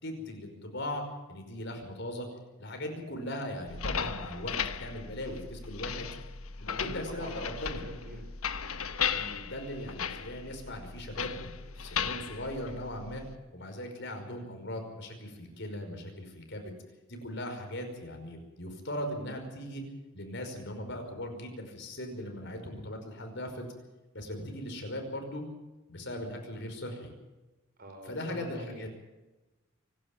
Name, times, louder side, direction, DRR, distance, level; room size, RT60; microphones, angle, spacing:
voice 1, 0.0-1.0 1.3-2.3 2.6-6.1 6.6-7.8 9.0-13.2 13.5-16.8 17.1-19.8 20.1-23.7 24.1-25.4 25.9-27.1 28.0-28.9, left 1 dB, 55° left, 4 dB, 5.4 m, -39 dB
sound 1, 3.7-13.3, left 7 dB, 90° left, 1.3 m, -36 dB
voice 2, 6.7-8.2 27.8-28.9, right 1 dB, 45° right, 5 dB, 5.0 m, -44 dB
25.5 x 12.0 x 9.3 m, 1.1 s
head